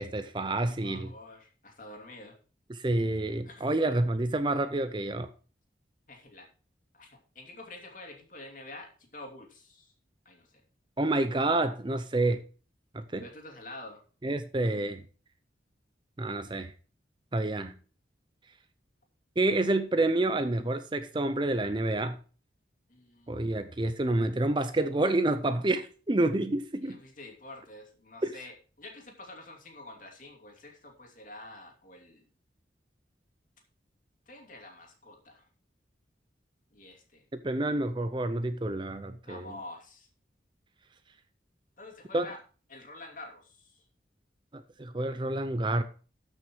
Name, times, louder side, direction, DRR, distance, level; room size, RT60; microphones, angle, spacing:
voice 1, 0.0-1.1 2.7-5.3 11.0-12.4 12.9-13.3 14.2-15.0 16.2-16.7 17.3-17.8 19.4-22.2 23.3-27.0 28.2-28.3 37.4-39.6 42.1-42.3 44.5-45.8, right 2 dB, 25° right, 0.6 m, -28 dB
voice 2, 0.5-2.3 3.4-4.0 6.1-6.5 6.9-7.1 7.3-9.9 10.2-10.6 13.2-14.0 22.9-23.5 26.8-32.3 34.3-35.4 36.7-37.2 39.2-40.1 41.8-42.4 42.7-43.8, left 2 dB, 45° left, 2.8 m, -48 dB
13.0 x 6.2 x 4.6 m
head